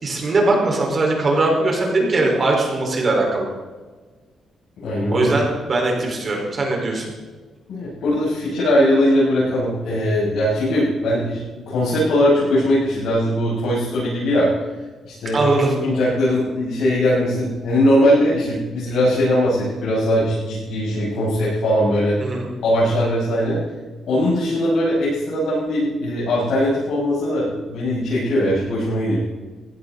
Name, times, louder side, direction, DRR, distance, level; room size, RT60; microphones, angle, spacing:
voice 1, 0.0-3.5 5.1-7.1 15.3-15.7 22.2-22.5, right 2 dB, 35° right, 0 dB, 5.0 m, -20 dB
voice 2, 4.8-5.3 7.7-14.5 15.1-15.4 15.8-22.2 22.6-23.6 24.1-29.2, equal, 75° left, -9 dB, 7.0 m, -20 dB
20.5 x 16.5 x 4.2 m, 1.4 s
cardioid pair, 155°, 0 cm